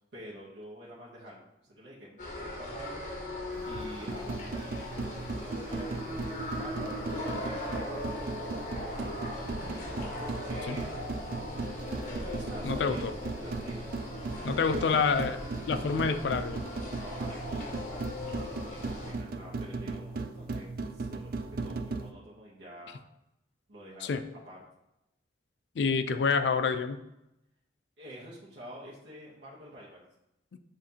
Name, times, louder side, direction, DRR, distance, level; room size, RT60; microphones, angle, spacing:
voice 1, 0.1-3.0 3.6-8.1 8.7-9.9 10.5-10.9 12.1-13.9 14.5-15.2 17.0-23.0 23.7-24.1 24.4-24.6 28.0-30.0, equal, 85° right, -6 dB, 0.9 m, -48 dB
sound 1, 2.2-19.1, left 1 dB, 45° left, 1.1 m, -39 dB
sound 2, 3.5-22.1, right 3 dB, 55° right, 0.4 m, -38 dB
voice 2, 12.6-13.1 14.4-15.4 15.7-16.6 24.0-24.2 25.8-27.0, left 5 dB, 70° left, 9 dB, 0.4 m, -27 dB
7.4 x 2.6 x 2.8 m, 0.88 s
head